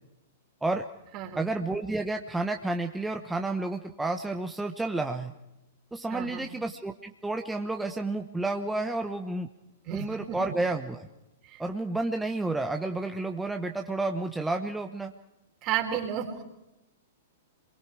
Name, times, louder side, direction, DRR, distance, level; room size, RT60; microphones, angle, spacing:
voice 1, 1.3-5.3 5.9-9.5 9.9-11.1 11.6-15.1, right 2 dB, 5° right, 4 dB, 1.2 m, -31 dB
voice 2, 6.1-6.5 9.9-10.5 11.4-11.6 15.6-16.4, right 9 dB, 35° right, 3 dB, 4.2 m, -33 dB
28.0 x 23.0 x 4.9 m, 0.92 s
hypercardioid pair, 110°, 0 cm